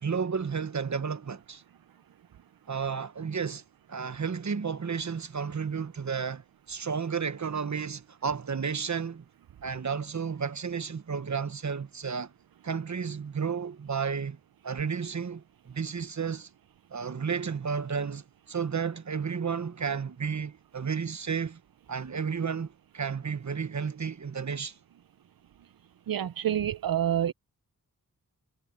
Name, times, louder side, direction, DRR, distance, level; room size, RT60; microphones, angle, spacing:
voice 1, 0.0-1.6 2.7-3.6 3.9-9.2 9.6-12.3 12.6-14.4 14.6-16.5 16.9-21.6 21.9-24.8, right 6 dB, 55° right, 1.1 m, -32 dB
voice 2, 26.1-27.3, right 10 dB, 75° right, 0.5 m, -27 dB
wide cardioid pair, 75°, 35 cm